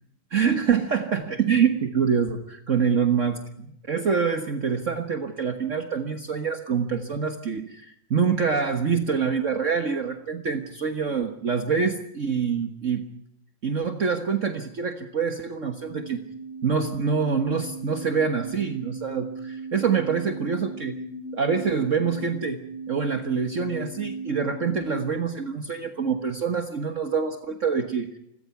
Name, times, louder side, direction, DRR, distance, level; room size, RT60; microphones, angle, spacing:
voice 1, 0.3-13.1 13.6-16.2 16.6-21.0 21.3-22.6 22.9-28.2, right 6 dB, 45° right, 6 dB, 1.0 m, -25 dB
sound 1, 15.4-25.0, right 3 dB, 30° right, 7.8 m, -38 dB
28.0 x 22.0 x 5.9 m, 0.75 s
omnidirectional pair, 3.3 m